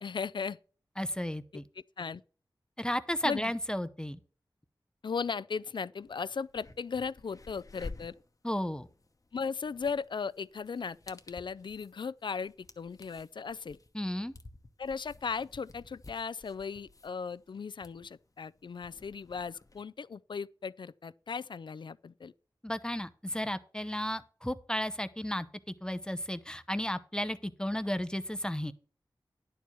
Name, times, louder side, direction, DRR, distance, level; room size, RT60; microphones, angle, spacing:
voice 1, 0.0-0.6 2.0-2.2 3.2-3.5 5.0-8.1 9.3-13.8 14.8-22.3, left 5 dB, 70° left, 0.3 m, -37 dB
voice 2, 1.0-1.6 2.8-4.2 8.4-8.9 13.9-14.3 22.6-28.7, left 1 dB, 10° left, 0.6 m, -34 dB
sound 1, 6.0-6.1 6.5-19.8, left 3 dB, 40° left, 0.9 m, -52 dB
11.0 x 4.6 x 6.8 m
wide cardioid pair, 75°, 8 cm